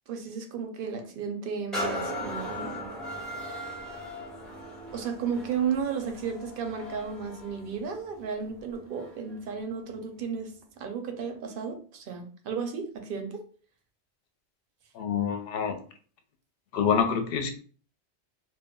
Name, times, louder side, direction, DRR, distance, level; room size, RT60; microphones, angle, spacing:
voice 1, 0.1-2.9 4.9-13.4, right 6 dB, 60° right, 0.7 m, -34 dB
sound 1, 1.7-9.3 9.9-10.0, equal, ahead, 0.4 m, -38 dB
voice 2, 14.9-15.8 16.7-17.5, left 7 dB, 65° left, 0.7 m, -26 dB
2.3 x 2.1 x 3.6 m
omnidirectional pair, 1.2 m